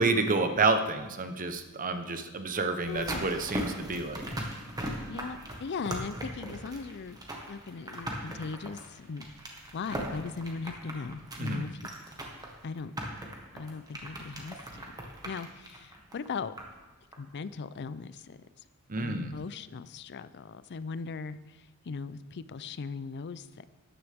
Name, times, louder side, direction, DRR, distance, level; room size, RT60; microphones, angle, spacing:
voice 1, 0.0-4.2 11.4-11.7 18.9-19.3, right 3 dB, 40° right, 8 dB, 0.9 m, -29 dB
sound 1, 2.8-16.8 17.1-17.2, right 1 dB, 20° right, 1.6 m, -39 dB
voice 2, 2.9-3.3 5.1-7.2 7.5-9.3 9.7-11.7 12.6-12.9 13.5-14.6 15.2-16.5 17.2-18.4 19.0-21.4 21.9-23.6, left 4 dB, 50° left, 15 dB, 0.5 m, -38 dB
13.0 x 9.9 x 3.6 m, 1.2 s
head